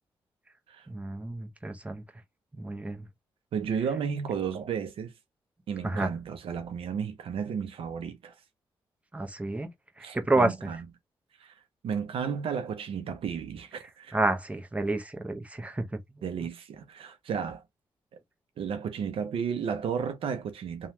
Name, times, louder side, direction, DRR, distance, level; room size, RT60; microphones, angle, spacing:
voice 1, 0.9-2.0 2.6-3.0 5.8-6.1 9.1-9.7 10.0-10.5 14.1-15.9, right 2 dB, 15° right, 0.8 m, -29 dB
voice 2, 3.5-5.1 5.7-8.4 10.0-10.8 11.4-14.2 16.2-17.6 18.1-18.2 18.6-20.9, right 7 dB, 75° right, 0.6 m, -33 dB
3.1 x 2.3 x 2.8 m
cardioid pair, 60°, 10 cm